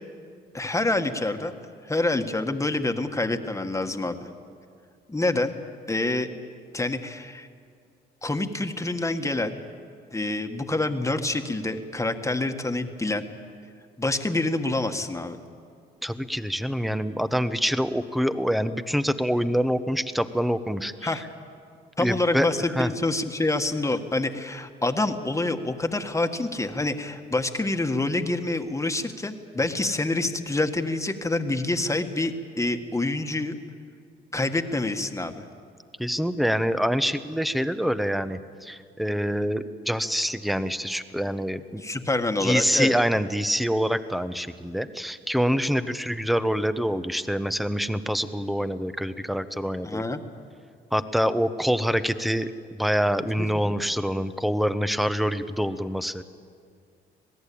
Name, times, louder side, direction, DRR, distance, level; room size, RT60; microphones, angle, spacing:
voice 1, 0.5-1.5 1.8-4.3 5.1-5.5 5.9-6.3 6.7-7.5 8.2-9.6 10.1-13.3 14.0-15.4 21.0-21.2 22.0-33.6 34.3-35.4 41.8-42.9 49.8-50.2 53.4-53.7, left 2 dB, 15° left, 6 dB, 1.6 m, -27 dB
voice 2, 16.0-21.1 22.0-22.5 22.8-22.9 36.0-41.8 42.4-50.0 50.9-56.2, equal, ahead, 12 dB, 1.0 m, -26 dB
26.5 x 18.5 x 8.6 m, 2.3 s
cardioid pair, 90°, 20 cm